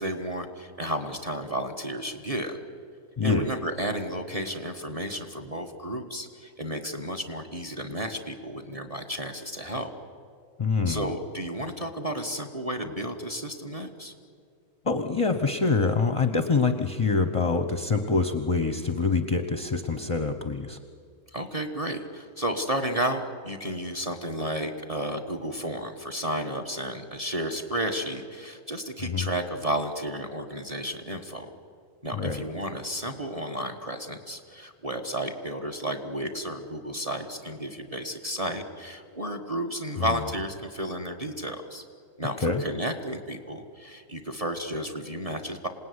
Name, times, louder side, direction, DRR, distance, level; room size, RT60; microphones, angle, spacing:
voice 1, 0.0-2.6 3.2-9.9 10.8-14.1 21.3-31.5 32.0-41.8 42.2-45.7, right 1 dB, 25° right, 7 dB, 1.5 m, -32 dB
voice 2, 3.2-3.5 10.6-11.1 14.9-20.8 29.0-29.3 32.1-32.4 40.0-40.1 42.4-42.6, left 4 dB, 25° left, 8 dB, 0.8 m, -25 dB
27.0 x 18.5 x 9.7 m, 2.2 s
omnidirectional pair, 1.7 m